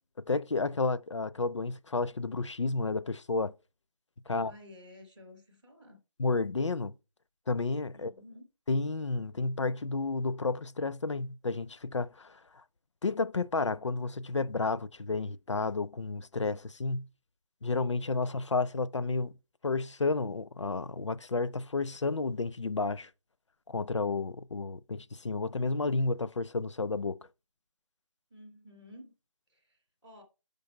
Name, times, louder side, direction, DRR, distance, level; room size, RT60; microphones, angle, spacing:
voice 1, 0.3-3.5 4.3-4.5 6.2-6.9 7.5-8.1 8.7-12.6 13.0-17.1 17.6-19.3 19.6-23.1 23.7-27.2, left 3 dB, 60° left, 0.5 m, -31 dB
voice 2, 4.3-6.0 7.9-8.5 28.3-29.1 29.5-30.2, left 1 dB, ahead, 0.4 m, -53 dB
6.6 x 5.3 x 4.3 m
figure-of-eight pair, 160°, 17 cm